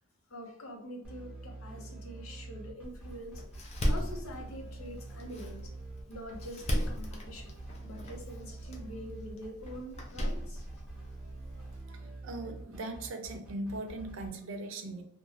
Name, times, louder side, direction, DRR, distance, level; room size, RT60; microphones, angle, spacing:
voice 1, 0.3-3.4 3.8-5.7 6.1-7.6 7.8-10.6 12.0-12.1, equal, 85° left, 1 dB, 0.7 m, -45 dB
sound 1, 1.0-14.3, right 3 dB, 5° right, 0.8 m, -46 dB
Door, 2.8-11.8, equal, 30° left, 0.4 m, -37 dB
voice 2, 11.6-15.0, right 2 dB, 65° right, 6 dB, 0.5 m, -40 dB
3.1 x 2.2 x 2.4 m, 0.68 s
head